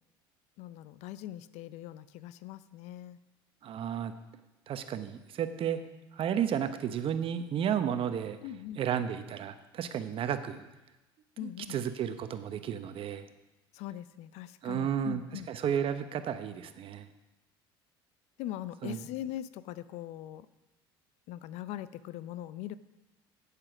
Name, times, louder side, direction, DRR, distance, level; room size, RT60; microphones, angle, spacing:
voice 1, 0.6-3.2 8.4-8.8 11.4-11.8 13.7-15.5 18.4-20.5 21.3-22.7, left 12 dB, 60° left, 15 dB, 0.5 m, -41 dB
voice 2, 3.6-4.1 4.7-5.8 6.2-8.4 8.8-10.6 11.4-13.3 14.6-15.2 15.5-17.0 18.8-19.0, right 9 dB, 45° right, 10 dB, 0.9 m, -32 dB
8.8 x 8.4 x 6.0 m, 1.0 s
hypercardioid pair, 75°, 12 cm